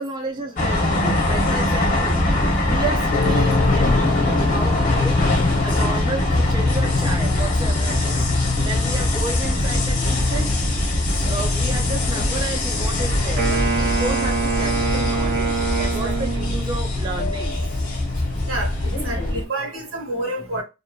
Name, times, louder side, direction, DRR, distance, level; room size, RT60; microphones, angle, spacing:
voice 1, 0.0-2.2 2.6-5.2 5.6-8.2 8.6-10.6 11.1-17.6, right 2 dB, 20° right, 0.4 m, -32 dB
sound 1, 0.6-19.4, left 1 dB, 40° left, 0.8 m, -22 dB
voice 2, 2.4-2.9 4.0-4.5 5.4-5.5 6.8-6.9 15.8-16.5 18.5-20.6, right 1 dB, 80° right, 1.2 m, -31 dB
sound 2, 3.1-19.0, left 5 dB, 70° left, 0.3 m, -29 dB
Wind instrument woodwind instrument, 13.4-16.8, right 5 dB, 55° right, 0.8 m, -25 dB
2.7 x 2.4 x 2.5 m
head